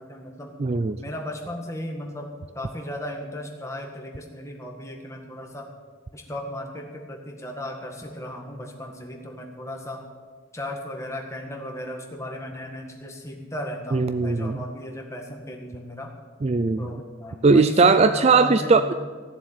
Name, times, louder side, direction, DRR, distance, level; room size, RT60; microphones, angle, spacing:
voice 1, 0.0-0.5 1.0-5.6 6.1-10.0 10.5-16.1 16.8-18.9, left 1 dB, 15° left, 1 dB, 1.8 m, -36 dB
voice 2, 0.6-1.0 13.9-14.6 16.4-16.9 17.4-18.9, right 4 dB, 30° right, 11 dB, 0.3 m, -19 dB
16.0 x 7.4 x 9.2 m, 1.6 s
head